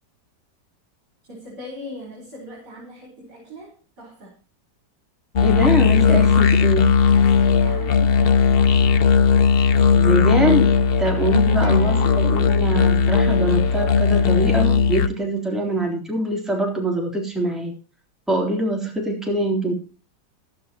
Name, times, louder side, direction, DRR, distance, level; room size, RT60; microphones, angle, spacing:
voice 1, 1.3-4.4 7.5-8.8 11.3-11.8, right 1 dB, 70° right, -1 dB, 5.8 m, -39 dB
sound 1, 5.4-15.1, left 6 dB, 65° left, 0.5 m, -17 dB
voice 2, 5.4-6.9 9.9-10.7 11.0-17.7 18.3-19.7, right 1 dB, ahead, 0 dB, 3.5 m, -24 dB
sound 2, 11.5-15.6, left 1 dB, 85° left, 2.3 m, -36 dB
14.5 x 13.0 x 3.0 m, 0.35 s
omnidirectional pair, 1.9 m